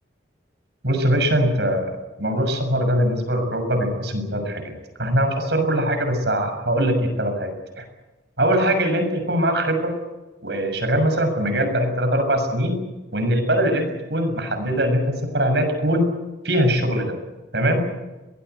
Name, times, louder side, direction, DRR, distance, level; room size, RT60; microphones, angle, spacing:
voice 1, 0.8-4.6 5.0-7.5 7.8-7.9 8.4-9.9 10.4-12.8 13.1-16.1 16.4-17.2 17.5-17.9, equal, 65° right, 6 dB, 6.9 m, -21 dB
23.5 x 20.0 x 8.2 m, 1.1 s
head